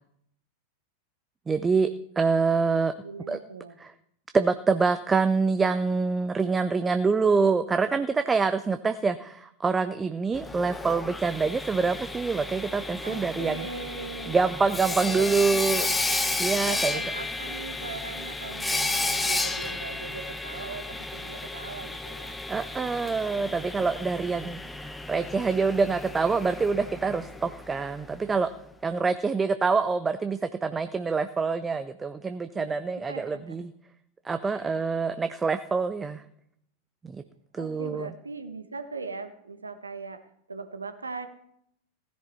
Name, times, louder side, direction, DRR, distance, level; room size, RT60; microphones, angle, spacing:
voice 1, 1.5-2.9 3.3-3.4 3.8-3.9 4.3-13.7 14.3-15.9 16.4-17.0 22.5-28.5 28.8-33.7 34.2-36.2 37.0-37.2 37.5-38.1, right 4 dB, 15° right, 11 dB, 0.5 m, -26 dB
voice 2, 3.0-3.8 13.0-14.4 15.0-16.2 16.6-22.4 32.5-32.7 33.1-33.6 34.5-34.7 37.6-40.2 40.5-41.3, right 4 dB, 75° right, 9 dB, 1.2 m, -39 dB
Sawing, 10.3-28.2, left 2 dB, 10° left, 0.9 m, -33 dB
16.0 x 10.5 x 4.3 m, 0.72 s
figure-of-eight pair, 90°, 0 cm